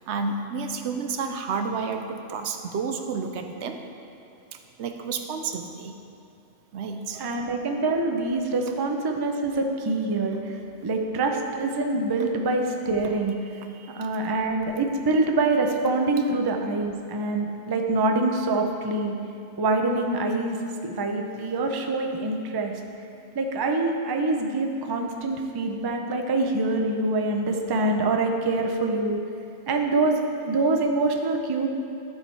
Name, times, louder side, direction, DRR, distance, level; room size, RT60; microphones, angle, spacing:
voice 1, 0.0-3.8 4.8-5.9 6.7-7.4 13.7-14.1, right 5 dB, 75° right, 6 dB, 0.9 m, -31 dB
voice 2, 7.2-13.3 13.9-19.2 19.6-20.6 20.8-22.7 23.3-29.2 29.7-31.7, right 2 dB, 30° right, 3 dB, 0.4 m, -25 dB
11.5 x 4.8 x 4.5 m, 2.6 s
omnidirectional pair, 1.2 m